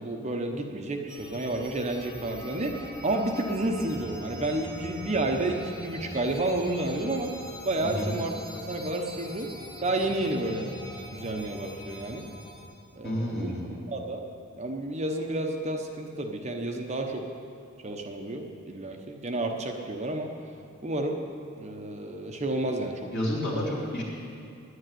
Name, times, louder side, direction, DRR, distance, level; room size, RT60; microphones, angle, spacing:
voice 1, 0.0-7.3 7.6-8.3 8.7-9.5 9.8-10.7 11.1-12.2 12.9-13.5 13.9-14.2 14.5-17.3 17.8-20.3 20.8-21.2 21.6-23.1, right 2 dB, 35° right, 3 dB, 0.9 m, -30 dB
sound 1, 1.1-12.7, left 1 dB, 15° left, 2.5 m, -42 dB
voice 2, 7.8-8.1 13.0-13.7 23.1-24.0, equal, 55° left, -4 dB, 3.7 m, -30 dB
10.5 x 9.6 x 9.2 m, 2.6 s
head